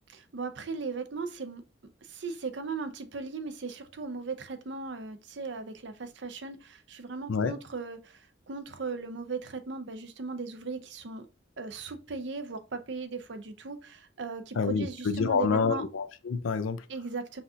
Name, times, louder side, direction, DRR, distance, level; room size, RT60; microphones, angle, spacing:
voice 1, 0.1-1.6 2.1-8.2 8.5-11.3 11.6-15.8 16.9-17.4, right 4 dB, 60° right, 0.6 m, -37 dB
voice 2, 14.6-16.8, left 5 dB, 90° left, 0.5 m, -28 dB
5.7 x 2.7 x 2.4 m
head